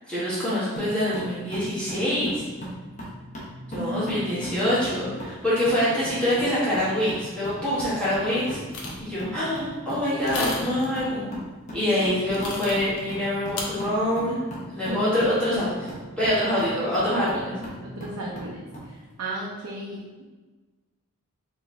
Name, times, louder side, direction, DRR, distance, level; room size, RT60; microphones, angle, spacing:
voice 1, 0.1-2.4 3.7-8.6 9.0-11.3 11.7-15.9 16.2-17.5, left 1 dB, 5° left, -11 dB, 1.4 m, -25 dB
sound 1, 0.8-18.9, equal, 30° left, 0.9 m, -39 dB
voice 2, 3.8-4.4 12.5-12.6 14.8-15.3 17.8-18.6 19.2-20.2, right 1 dB, 90° right, -4 dB, 0.6 m, -34 dB
sound 2, 8.7-9.0 10.2-10.8 12.3-13.0 13.6-13.7, left 3 dB, 85° left, 0.8 m, -33 dB
4.5 x 3.1 x 3.3 m, 1.3 s
head